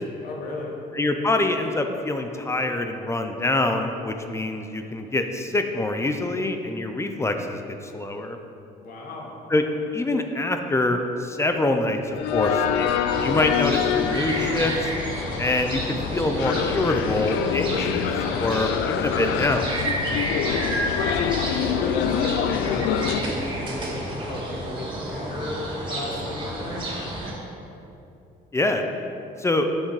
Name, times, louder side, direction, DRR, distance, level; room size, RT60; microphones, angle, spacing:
voice 1, 0.2-0.7 8.8-9.4 20.2-21.0 21.5-26.9, left 2 dB, 65° left, -1 dB, 1.8 m, -35 dB
voice 2, 0.9-8.4 9.5-9.6 9.9-12.9 13.2-14.9 15.4-18.1 18.4-19.7 28.5-28.8 29.4-29.7, left 2 dB, 15° left, 5 dB, 0.6 m, -25 dB
sound 1, 12.2-23.2, left 8 dB, 90° left, 0.5 m, -26 dB
sound 2, 13.1-27.3, right 1 dB, 30° right, 2.3 m, -31 dB
8.2 x 6.9 x 4.8 m, 2.8 s
cardioid pair, 110°, 17 cm